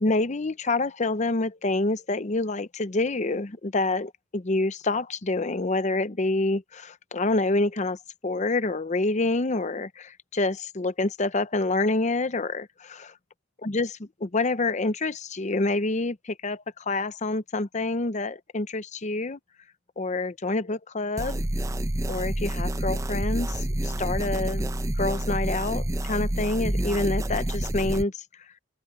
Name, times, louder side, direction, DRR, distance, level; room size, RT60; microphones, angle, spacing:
voice 1, 0.0-13.1 13.6-19.4 20.0-21.4 22.1-24.7 25.0-28.2, left 2 dB, 35° left, 0.7 m, -27 dB
sound 1, 21.2-28.0, right 1 dB, 15° right, 0.7 m, -28 dB
head